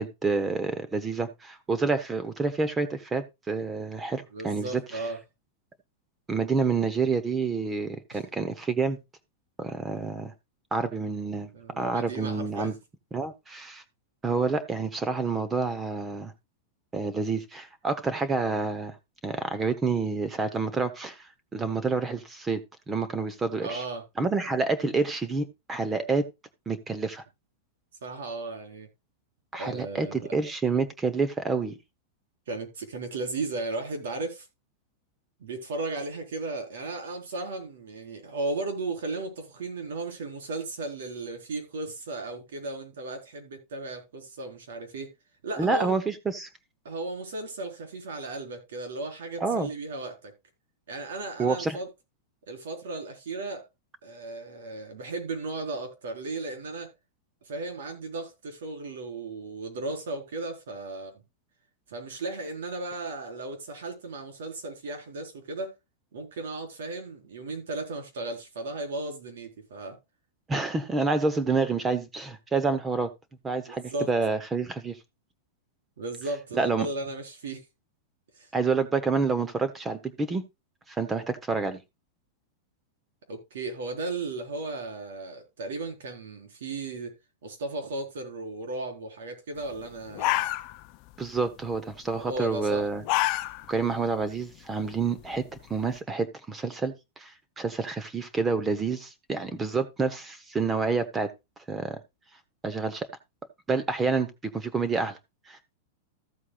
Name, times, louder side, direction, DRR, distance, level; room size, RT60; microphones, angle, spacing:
voice 1, 0.0-5.0 6.3-9.0 9.6-10.3 10.7-11.5 11.8-12.7 13.1-13.8 14.2-16.3 16.9-18.9 19.2-21.2 21.5-22.6 22.9-23.8 24.2-26.2 26.7-27.2 29.5-31.7 45.6-46.5 49.4-49.7 51.4-51.8 70.5-73.1 73.4-75.0 76.5-76.9 78.5-80.4 80.9-81.8 91.2-93.0 93.7-95.4 95.7-97.3 97.6-101.3 101.7-102.0 102.6-103.1 103.7-105.2 105.5-105.6, right 4 dB, 10° right, 0.9 m, -28 dB
voice 2, 4.3-5.2 8.1-8.2 11.5-12.7 23.6-24.0 28.0-28.9 29.6-30.3 32.5-34.5 35.4-45.1 45.4-46.0 46.8-50.3 50.9-51.9 52.5-53.7 54.0-56.9 57.4-61.2 61.9-65.7 66.1-70.0 73.7-74.1 76.0-77.6 78.4-78.5 83.3-87.1 87.4-90.5 92.1-92.8, right 2 dB, 90° right, 4.3 m, -35 dB
sound 1, 89.7-89.8 90.1-91.1 91.4-91.7 92.7-93.8 94.2-94.3 94.8-95.9, left 16 dB, 30° left, 0.6 m, -28 dB
14.0 x 8.1 x 2.4 m
supercardioid pair, 180°, 0 cm